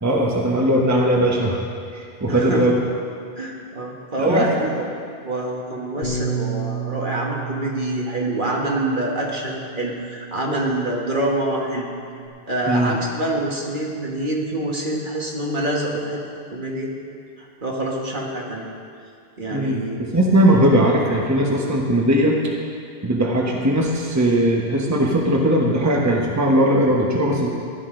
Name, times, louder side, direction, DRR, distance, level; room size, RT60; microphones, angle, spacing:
voice 1, 0.0-1.6 1.9-2.8 4.2-4.7 12.7-13.0 19.5-22.5 23.0-27.5, right 1 dB, 15° right, -2 dB, 1.2 m, -19 dB
voice 2, 2.3-2.7 3.4-4.8 5.2-11.8 12.5-16.2 16.5-16.9 17.6-18.6 19.4-20.2, right 1 dB, 50° right, -2 dB, 1.7 m, -25 dB
Bass guitar, 6.0-12.3, right 5 dB, 45° left, 1.4 m, -32 dB
16.0 x 11.5 x 3.9 m, 2.3 s
omnidirectional pair, 1.1 m